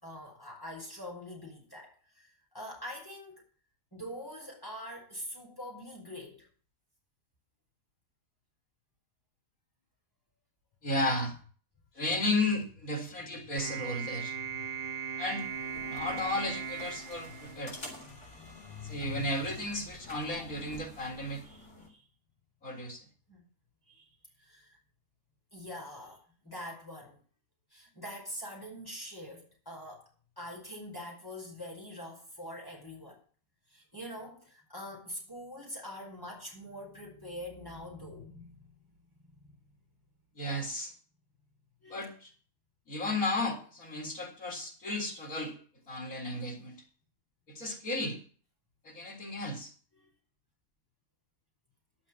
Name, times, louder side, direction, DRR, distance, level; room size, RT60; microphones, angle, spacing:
voice 1, 0.0-3.4 3.9-6.5 13.2-13.4 14.0-15.1 17.1-17.6 17.9-20.3 21.4-22.1 23.3-23.4 23.9-24.8 25.5-27.2 27.7-30.1 30.4-33.2 33.7-38.7 39.0-39.8 41.8-42.1 49.9-50.1, left 1 dB, 15° left, -2 dB, 5.1 m, -45 dB
voice 2, 10.8-11.3 12.0-14.4 15.2-15.5 15.9-17.8 18.8-21.4 22.6-23.0 40.4-40.9 41.9-42.3 42.9-45.5 45.9-46.8 47.5-48.2 48.9-49.7, left 2 dB, 75° left, 1 dB, 4.1 m, -34 dB
sound 1, 13.6-18.1, right 7 dB, 40° right, 1.8 m, -39 dB
sound 2, 15.4-21.9, left 2 dB, 55° left, 3.9 m, -50 dB
11.0 x 7.5 x 7.5 m, 0.42 s
omnidirectional pair, 1.5 m